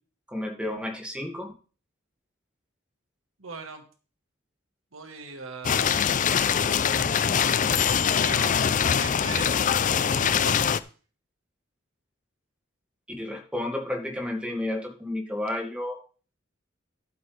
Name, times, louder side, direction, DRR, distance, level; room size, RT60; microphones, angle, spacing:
voice 1, 0.3-1.5 13.2-16.0, left 1 dB, 5° right, 2 dB, 2.1 m, -31 dB
voice 2, 3.4-3.8 4.9-5.9 6.6-7.8 8.2-9.5 10.1-10.7, right 4 dB, 80° right, 6 dB, 1.5 m, -40 dB
sound 1, 5.6-10.8, left 7 dB, 40° left, 0.4 m, -23 dB
12.0 x 7.9 x 3.4 m, 0.38 s
head